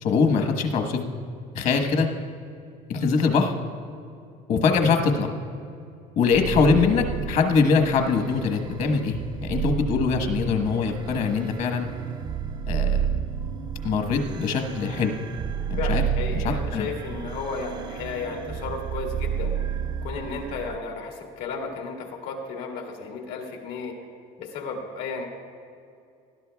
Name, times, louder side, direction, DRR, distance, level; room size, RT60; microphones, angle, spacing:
voice 1, 0.0-1.0 1.5-2.1 2.9-3.5 4.5-5.3 6.2-11.9 12.7-13.1 13.8-15.1 15.7-16.1 16.3-16.9, left 5 dB, 60° left, 6 dB, 1.3 m, -23 dB
sound 1, 6.3-20.8, right 8 dB, 30° right, 0.4 m, -31 dB
voice 2, 15.8-19.5 20.0-24.0 24.4-25.3, left 4 dB, 90° left, 1 dB, 1.9 m, -33 dB
18.5 x 12.5 x 2.3 m, 2.4 s
cardioid pair, 135°, 14 cm